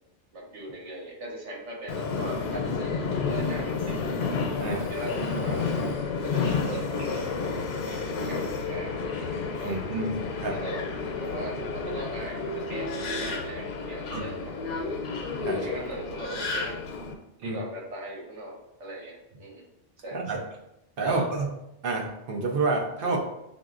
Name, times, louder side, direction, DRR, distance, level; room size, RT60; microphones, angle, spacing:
voice 1, 0.3-3.0 3.3-4.3 4.7-5.7 6.2-7.6 7.8-9.1 9.6-9.8 10.5-10.9 11.2-15.0 15.5-16.8 17.4-19.6 20.0-20.4 21.0-21.3 23.0-23.2, right 1 dB, 85° right, -2 dB, 1.3 m, -39 dB
Subway metro underground, 1.9-17.1, left 4 dB, 90° left, 1.0 m, -31 dB
voice 2, 9.6-10.6 14.1-14.2 15.4-15.7 17.4-17.6 20.1-20.4 21.0-21.5 21.8-23.2, right 3 dB, 55° right, 0 dB, 0.9 m, -29 dB
5.9 x 2.6 x 2.4 m, 0.85 s
omnidirectional pair, 1.2 m